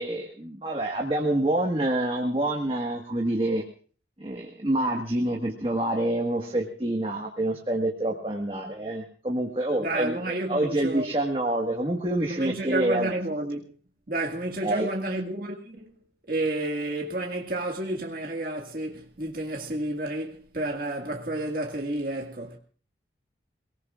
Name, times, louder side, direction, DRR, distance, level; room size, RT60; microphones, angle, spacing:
voice 1, 0.0-3.6 4.2-13.1 14.6-14.9, right 1 dB, 30° right, 1.6 m, -27 dB
voice 2, 9.8-11.1 12.3-13.6 14.1-15.9 16.3-22.6, right 1 dB, 55° right, 1.9 m, -30 dB
28.5 x 18.5 x 2.5 m
head